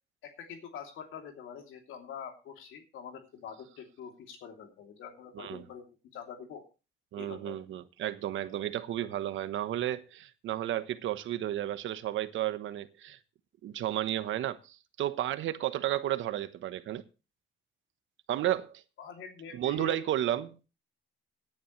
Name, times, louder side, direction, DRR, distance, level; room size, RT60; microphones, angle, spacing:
voice 1, 0.2-5.8 6.1-6.6 7.2-7.6 19.0-20.0, left 8 dB, 85° left, 3.0 m, -45 dB
voice 2, 7.1-13.2 13.6-17.0 18.3-18.8 19.5-20.7, right 12 dB, 80° right, 1.1 m, -33 dB
17.5 x 10.0 x 3.2 m
cardioid pair, 90°, 20 cm